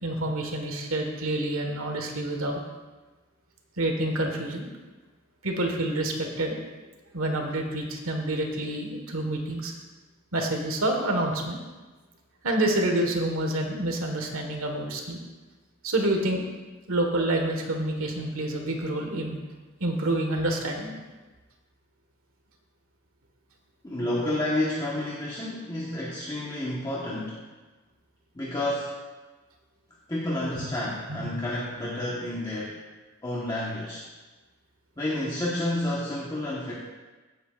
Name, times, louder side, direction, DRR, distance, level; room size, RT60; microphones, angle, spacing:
voice 1, 0.0-2.6 3.8-4.7 5.4-6.6 7.1-9.7 10.3-11.6 12.4-15.2 15.8-16.4 16.9-19.4 19.8-20.9 30.6-30.7 31.2-31.3, right 1 dB, 80° right, 3 dB, 1.5 m, -28 dB
voice 2, 23.8-27.4 28.3-28.9 30.1-32.8 33.2-34.0 35.0-36.7, left 1 dB, 20° left, -6 dB, 1.2 m, -30 dB
16.0 x 8.1 x 2.5 m, 1.2 s
head